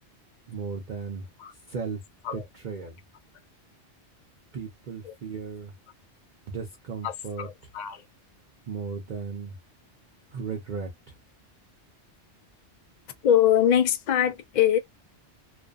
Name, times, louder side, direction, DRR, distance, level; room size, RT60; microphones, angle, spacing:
voice 1, 0.5-1.3 1.7-2.0 2.3-3.0 4.5-5.7 6.5-7.5 8.7-9.6 10.3-11.1, right 5 dB, 50° right, 0.7 m, -35 dB
voice 2, 7.0-8.0 13.2-14.8, left 10 dB, 50° left, 0.6 m, -23 dB
2.5 x 2.5 x 2.3 m
omnidirectional pair, 1.2 m